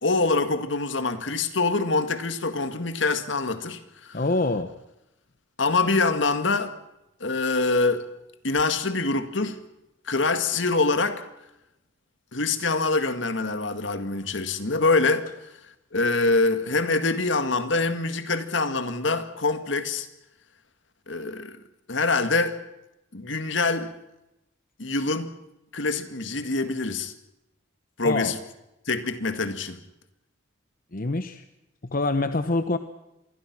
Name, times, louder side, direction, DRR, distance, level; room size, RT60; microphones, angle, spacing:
voice 1, 0.0-4.2 5.6-6.7 7.2-8.0 8.4-9.6 10.1-11.2 12.3-15.3 15.9-20.1 21.1-21.6 21.9-22.6 23.1-23.9 24.8-25.3 25.7-27.1 28.0-28.4 28.9-29.8, left 3 dB, 65° left, 2.0 m, -25 dB
voice 2, 4.1-4.7 28.0-28.3 30.9-31.4 31.8-32.8, left 2 dB, 45° left, 1.0 m, -25 dB
27.0 x 21.0 x 6.1 m
head